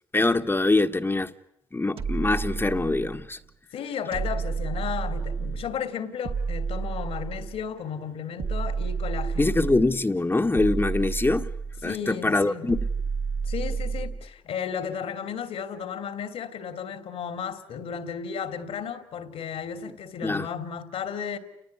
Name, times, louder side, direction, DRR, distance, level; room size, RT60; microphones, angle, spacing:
voice 1, 0.1-1.3 1.7-3.4 9.4-11.5 11.8-12.8 20.2-20.5, left 2 dB, 20° left, 1.5 m, -24 dB
sound 1, 2.0-3.3 4.1-5.7 6.2-7.7 8.4-10.0 10.5-11.9 12.7-14.3, right 5 dB, 60° right, 2.3 m, -30 dB
voice 2, 3.7-9.6 11.8-12.7 13.4-21.4, left 7 dB, 70° left, 3.1 m, -34 dB
29.5 x 20.0 x 9.9 m
supercardioid pair, 50°, 10 cm